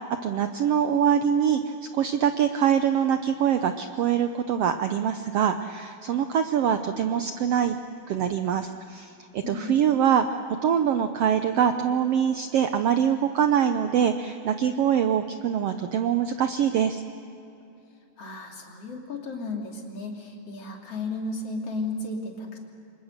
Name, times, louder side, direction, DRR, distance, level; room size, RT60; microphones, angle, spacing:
voice 1, 0.2-7.8 8.1-17.0, right 8 dB, 90° right, 8 dB, 1.3 m, -24 dB
voice 2, 9.4-9.7 18.2-22.6, left 2 dB, 45° left, 0 dB, 3.7 m, -34 dB
29.5 x 26.0 x 6.6 m, 2.7 s
omnidirectional pair, 3.8 m